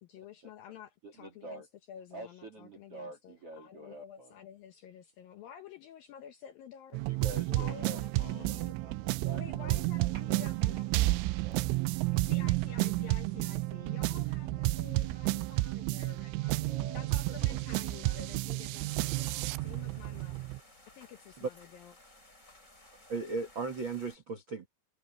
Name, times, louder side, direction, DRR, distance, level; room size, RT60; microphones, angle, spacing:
voice 1, 0.0-1.6 1.9-7.0 7.5-8.8 9.3-11.1 11.5-11.6 12.1-20.4 20.9-21.9, left 9 dB, 75° left, 2.1 m, -50 dB
voice 2, 1.0-1.7 2.1-4.3 7.0-11.7 16.7-17.1 17.4-17.5 19.8-19.9, right 1 dB, 40° right, 2.8 m, -47 dB
sound 1, 6.9-20.6, right 19 dB, 90° right, 3.1 m, -31 dB
sound 2, 18.9-24.2, left 1 dB, 15° left, 7.7 m, -58 dB
voice 3, 23.1-24.7, right 4 dB, 65° right, 1.2 m, -36 dB
omnidirectional pair, 5.5 m